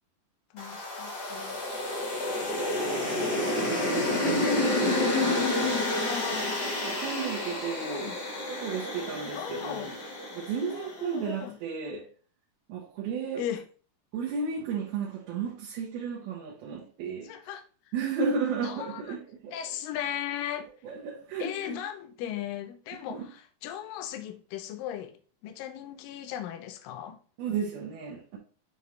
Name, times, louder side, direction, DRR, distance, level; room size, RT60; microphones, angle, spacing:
voice 1, 0.5-1.6 3.2-4.8 6.0-6.6 7.2-7.3 7.9-8.2 9.3-10.0 10.7-11.6 13.4-13.7 17.0-17.6 18.6-19.0 19.5-20.7 21.4-25.1 25.4-27.2, left 10 dB, 75° left, 2.2 m, -38 dB
sound 1, 0.6-10.9, left 2 dB, 55° left, 1.1 m, -29 dB
voice 2, 3.3-5.9 6.7-8.1 8.5-9.9 10.3-12.1 12.7-13.4 14.1-17.3 17.9-19.5 20.8-21.8 23.1-23.3 27.4-28.4, right 5 dB, 75° right, 3.1 m, -34 dB
8.8 x 3.6 x 3.1 m
omnidirectional pair, 4.5 m